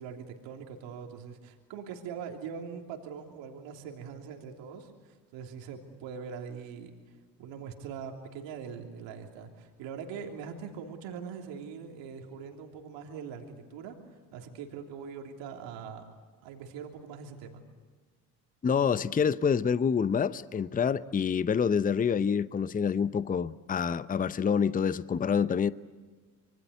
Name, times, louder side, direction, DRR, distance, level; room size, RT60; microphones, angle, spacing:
voice 1, 0.0-6.9 7.4-14.0 14.3-16.0 16.4-17.6, right 6 dB, 60° right, 3 dB, 3.2 m, -42 dB
voice 2, 18.6-25.7, left 6 dB, 15° left, 17 dB, 0.7 m, -27 dB
26.0 x 23.5 x 8.2 m, 1.4 s
hypercardioid pair, 65°, 49 cm